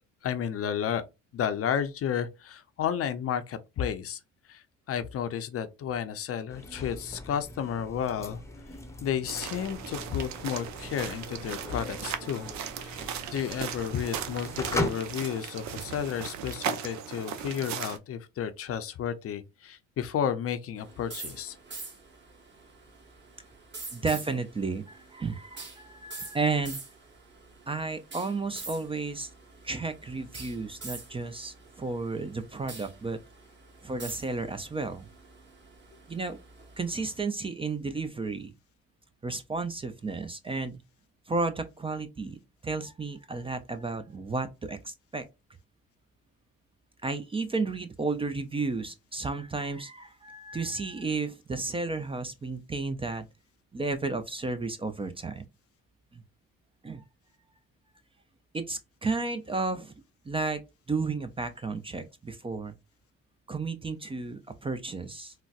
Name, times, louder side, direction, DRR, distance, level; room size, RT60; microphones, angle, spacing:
voice 1, 0.2-1.0 1.3-4.2 4.5-8.4 9.0-12.5 12.8-21.6, left 8 dB, 50° left, 0.6 m, -32 dB
sound 1, 6.5-14.9, left 1 dB, 10° left, 0.8 m, -39 dB
sound 2, 9.3-18.0, right 8 dB, 65° right, 0.6 m, -37 dB
sound 3, 20.8-37.2, right 3 dB, 35° right, 1.8 m, -46 dB
voice 2, 23.9-26.8 27.7-29.3 29.6-33.2 33.8-35.1 36.1-36.4 36.8-38.5 39.2-40.8 41.3-42.4 42.6-45.3 47.0-53.3 53.7-55.4 56.1-56.2 56.8-57.0 58.5-59.9 60.2-60.6 60.9-62.7 63.5-65.3, right 3 dB, 20° right, 0.4 m, -32 dB
3.9 x 2.1 x 2.4 m
cardioid pair, 90°, 30 cm